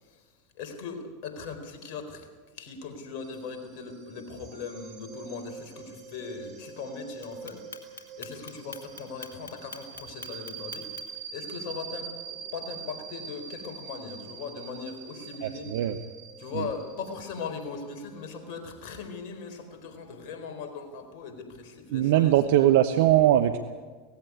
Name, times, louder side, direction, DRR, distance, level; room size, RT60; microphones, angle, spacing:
voice 1, 0.5-2.3 2.5-10.9 11.3-15.7 16.4-22.3, left 5 dB, 55° left, 6 dB, 4.3 m, -39 dB
sound 1, 3.2-19.5, right 6 dB, 45° right, 3.3 m, -44 dB
Clock, 7.2-11.2, left 4 dB, 85° left, 2.3 m, -43 dB
voice 2, 15.4-16.0 16.5-16.7 21.9-23.6, right 12 dB, 65° right, 9 dB, 1.0 m, -21 dB
18.0 x 15.5 x 9.7 m, 1.4 s
hypercardioid pair, 85°, 0 cm